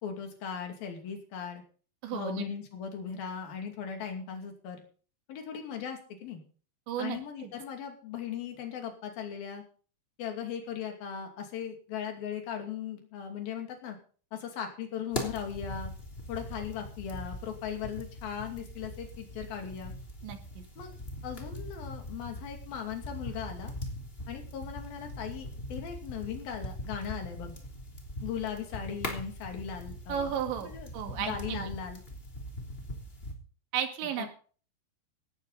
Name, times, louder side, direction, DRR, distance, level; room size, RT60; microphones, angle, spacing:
voice 1, 0.0-1.6 2.1-4.8 5.3-6.4 7.0-9.6 10.2-14.0 14.3-15.9 16.3-19.9 20.8-21.0 21.2-23.7 24.3-27.6 28.2-30.3 30.6-32.0 34.2-34.3, left 8 dB, 55° left, 4 dB, 4.2 m, -38 dB
voice 2, 2.0-2.4 6.9-7.5 20.2-20.6 30.1-31.7 33.7-34.3, right 9 dB, 80° right, 6 dB, 4.3 m, -34 dB
sound 1, 15.1-33.3, left 1 dB, 15° left, 2.5 m, -41 dB
17.5 x 13.0 x 4.1 m, 0.42 s
omnidirectional pair, 5.2 m